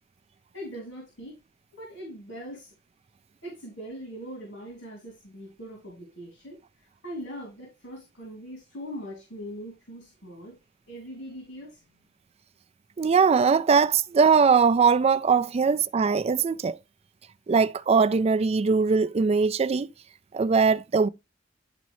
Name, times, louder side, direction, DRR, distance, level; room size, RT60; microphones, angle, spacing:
voice 1, 0.5-1.4 1.7-2.7 3.4-10.5 10.9-11.8, equal, 85° left, 2.8 m, -41 dB
voice 2, 13.0-16.8 17.5-19.9 20.3-21.1, right 5 dB, 35° right, 0.3 m, -21 dB
10.5 x 4.0 x 3.0 m
head